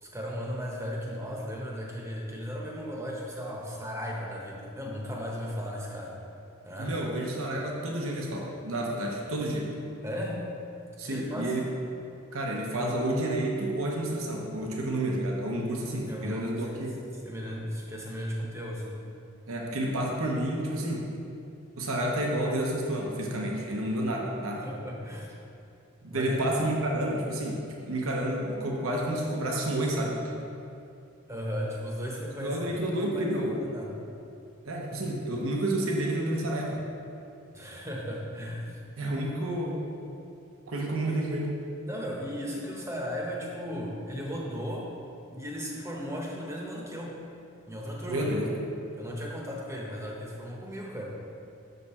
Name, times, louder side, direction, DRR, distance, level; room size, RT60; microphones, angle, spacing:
voice 1, 0.0-6.2 6.6-6.9 10.0-10.5 11.0-11.6 16.1-16.8 17.2-19.0 24.6-25.3 26.1-26.4 31.3-33.9 37.5-38.8 41.9-44.9 45.3-47.2 47.7-48.4 49.0-51.2, equal, 15° right, -2 dB, 0.9 m, -36 dB
voice 2, 6.8-9.7 11.0-11.6 12.3-17.0 19.5-21.0 21.7-24.7 26.0-30.4 32.4-33.5 34.6-36.8 39.0-39.8 40.7-41.5 48.1-48.6, right 1 dB, 85° right, -1 dB, 1.0 m, -30 dB
6.7 x 6.4 x 4.3 m, 2.6 s
head